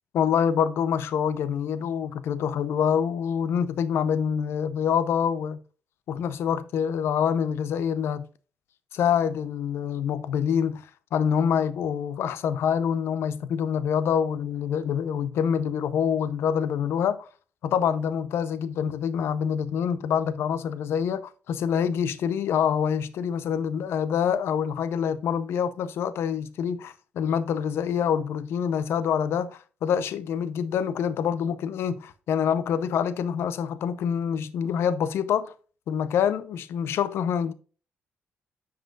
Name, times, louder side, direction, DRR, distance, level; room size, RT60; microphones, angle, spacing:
voice 1, 0.1-5.6 6.1-8.3 8.9-10.8 11.1-17.3 17.6-35.5 35.9-37.5, left 8 dB, 80° left, 0.7 m, -26 dB
9.1 x 4.8 x 2.4 m
cardioid pair, 90°, 4 cm